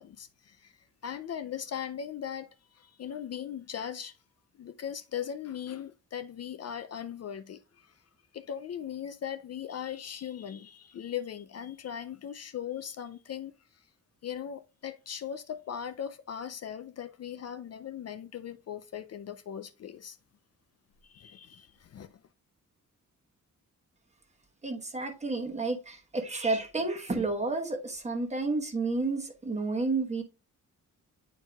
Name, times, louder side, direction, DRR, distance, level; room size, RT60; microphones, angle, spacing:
voice 1, 0.0-4.2 4.6-8.0 8.3-13.8 14.2-20.2 21.0-22.1, left 9 dB, 50° left, 0.4 m, -39 dB
voice 2, 24.6-30.2, right 3 dB, 20° right, 1.1 m, -31 dB
9.1 x 4.5 x 2.3 m
wide cardioid pair, 165°, 32 cm